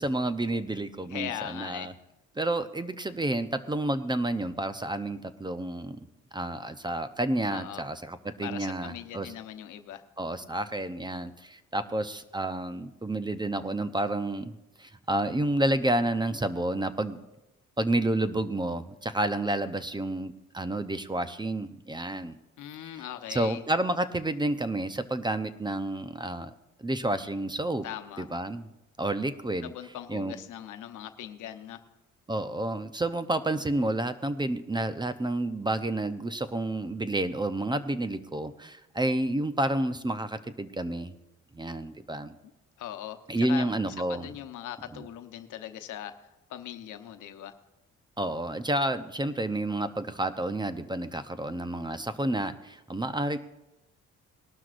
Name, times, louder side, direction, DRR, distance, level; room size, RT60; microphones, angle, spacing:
voice 1, 0.0-1.9 2.4-6.0 6.3-9.3 10.2-14.5 14.8-17.2 17.8-22.4 22.8-23.0 23.3-26.5 26.8-27.9 28.2-28.7 29.0-29.7 30.1-30.4 32.3-41.1 41.5-42.3 43.3-44.3 44.9-45.0 48.2-53.4, right 1 dB, 15° right, 11 dB, 0.7 m, -30 dB
voice 2, 1.1-1.9 7.5-7.8 8.4-10.0 22.6-23.6 27.8-28.3 29.6-31.8 42.8-43.7 44.1-47.5, left 11 dB, 80° left, 8 dB, 1.0 m, -40 dB
19.5 x 12.0 x 2.6 m, 0.92 s
cardioid pair, 90°, 30 cm